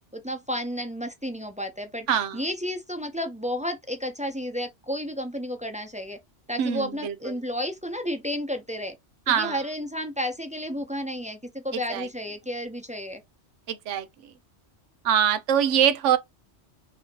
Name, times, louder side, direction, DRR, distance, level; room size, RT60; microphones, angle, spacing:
voice 1, 0.1-2.1 2.3-6.2 6.5-9.0 9.3-13.2, equal, 5° right, 0.7 m, -32 dB
voice 2, 2.1-2.4 6.6-7.1 9.3-9.6 11.9-12.1 13.7-14.1 15.0-16.2, right 9 dB, 90° right, 1.0 m, -23 dB
5.4 x 2.9 x 2.9 m
omnidirectional pair, 1.2 m